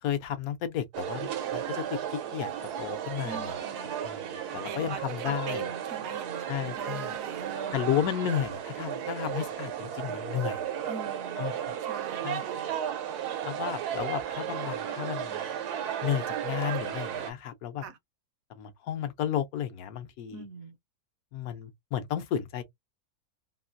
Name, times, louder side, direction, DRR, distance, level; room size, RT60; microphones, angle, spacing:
voice 1, 0.0-2.0 2.3-2.5 2.8-5.7 6.5-7.1 7.7-10.6 11.4-11.5 12.2-12.4 13.4-15.5 16.0-17.8 18.6-20.4 21.3-22.6, left 10 dB, 75° left, 1.0 m, -33 dB
sound 1, 0.9-17.3, right 9 dB, 85° right, 1.2 m, -34 dB
voice 2, 3.2-4.0 4.6-7.9 10.9-11.4 11.8-12.7 17.8-18.0 20.3-20.8, right 5 dB, 70° right, 1.0 m, -42 dB
3.0 x 2.4 x 2.5 m
omnidirectional pair, 1.6 m